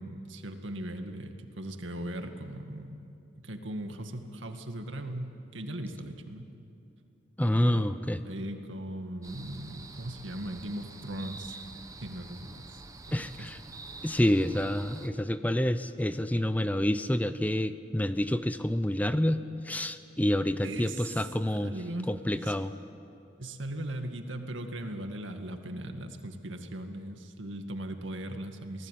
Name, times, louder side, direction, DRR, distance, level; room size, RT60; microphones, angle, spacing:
voice 1, 0.0-3.1 3.4-6.5 7.4-7.9 8.2-11.6 12.0-12.7 13.1-13.3 20.6-22.1 22.4-22.6 23.4-28.9, right 1 dB, 85° right, 5 dB, 2.0 m, -39 dB
voice 2, 7.4-8.2 13.1-13.6 14.0-21.7 22.1-22.7, left 1 dB, 10° left, 11 dB, 0.6 m, -28 dB
sound 1, 9.2-15.1, right 3 dB, 20° right, 1.1 m, -47 dB
28.0 x 19.0 x 9.3 m, 2.7 s
head